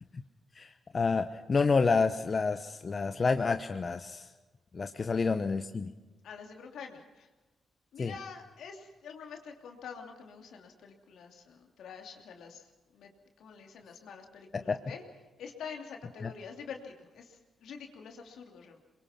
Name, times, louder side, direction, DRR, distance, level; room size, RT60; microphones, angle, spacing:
voice 1, 0.5-4.3 4.7-5.9 8.0-8.1 14.7-14.8, left 4 dB, 45° left, 8 dB, 1.0 m, -29 dB
voice 2, 6.2-7.3 7.9-13.1 13.4-15.0 15.4-18.8, left 6 dB, 75° left, 3 dB, 2.9 m, -46 dB
23.0 x 22.0 x 5.9 m, 1.2 s
supercardioid pair, 50°, 0 cm